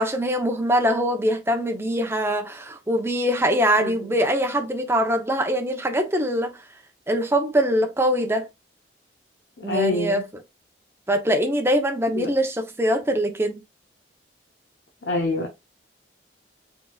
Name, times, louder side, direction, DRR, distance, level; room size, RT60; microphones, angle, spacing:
voice 1, 0.0-6.5 7.1-8.5 9.6-10.2 11.1-13.5, equal, 15° right, 0.7 m, -23 dB
voice 2, 3.8-4.1 9.6-10.2 12.1-12.3 15.0-15.5, left 2 dB, 75° left, 0.9 m, -26 dB
4.4 x 4.0 x 2.3 m
head